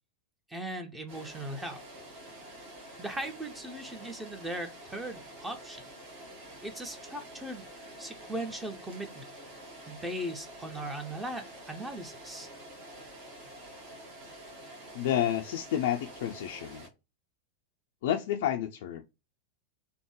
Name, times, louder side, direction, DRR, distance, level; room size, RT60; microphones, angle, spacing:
voice 1, 0.5-1.8 3.0-5.8 6.6-9.3 9.9-12.5, right 1 dB, 10° right, 0.6 m, -39 dB
sound 1, 1.1-16.9, right 1 dB, 45° right, 1.2 m, -48 dB
voice 2, 14.9-16.8 18.0-19.0, left 10 dB, 55° left, 0.4 m, -30 dB
3.4 x 2.1 x 3.0 m
figure-of-eight pair, 90°, 0 cm